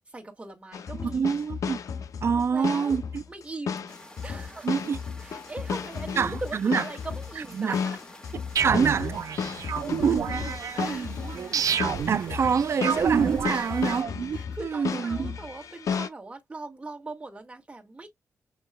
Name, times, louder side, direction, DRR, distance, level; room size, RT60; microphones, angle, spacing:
voice 1, 0.1-1.3 2.3-3.0 3.3-3.9 4.2-4.7 5.2-8.0 10.7-11.1 13.5-13.7 14.3-18.1, right 2 dB, 20° right, 1.9 m, -40 dB
sound 1, 0.7-16.1, left 6 dB, 65° left, 0.6 m, -34 dB
voice 2, 1.0-1.8 2.2-3.2 4.6-5.0 6.2-6.8 7.5-7.7 8.6-9.1 11.3-11.7 12.1-14.1 14.6-15.4, right 6 dB, 45° right, 0.3 m, -26 dB
sound 2, 3.9-14.0, left 1 dB, 15° left, 1.6 m, -49 dB
sound 3, 8.6-14.4, right 7 dB, 70° right, 0.7 m, -28 dB
7.2 x 3.0 x 2.3 m
wide cardioid pair, 120°, 6 cm